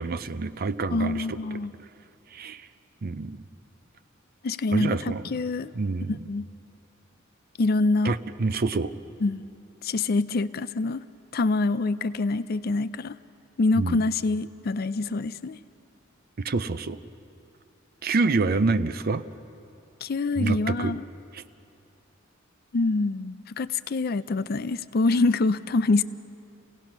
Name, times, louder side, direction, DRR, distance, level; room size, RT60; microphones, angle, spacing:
voice 1, 0.0-1.4 2.3-2.6 3.0-3.4 4.7-5.3 5.8-6.3 8.0-8.9 13.8-14.0 16.4-17.0 18.0-19.2 20.3-20.9 21.3-21.4, right 3 dB, 50° right, 12 dB, 0.5 m, -27 dB
voice 2, 0.9-1.7 4.4-5.7 6.1-6.5 7.6-8.2 9.2-9.4 9.8-11.0 11.3-13.2 13.6-15.6 20.0-21.0 22.7-26.0, left 3 dB, 50° left, 15 dB, 0.5 m, -25 dB
29.0 x 17.5 x 6.0 m, 2.7 s
head